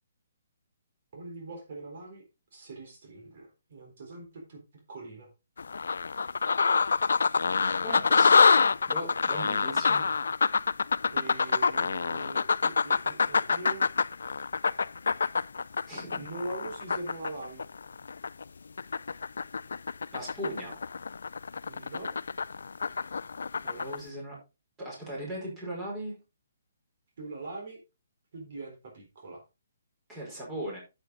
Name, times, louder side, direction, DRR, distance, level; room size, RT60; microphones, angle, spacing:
voice 1, 1.1-2.2 2.5-4.6 4.9-5.3 10.0-10.3 11.1-13.9 16.2-17.6 21.7-22.2 27.2-27.8 28.3-29.4, right 2 dB, 50° right, 2 dB, 3.9 m, -42 dB
sound 1, 5.6-18.4 18.8-24.0, left 5 dB, 85° left, 0.4 m, -26 dB
voice 2, 7.8-10.1 15.9-16.2 20.1-20.8 23.6-24.4 24.8-26.2 30.1-30.8, right 1 dB, 10° right, -4 dB, 4.9 m, -38 dB
9.0 x 8.1 x 3.8 m, 0.27 s
hypercardioid pair, 160°, 0 cm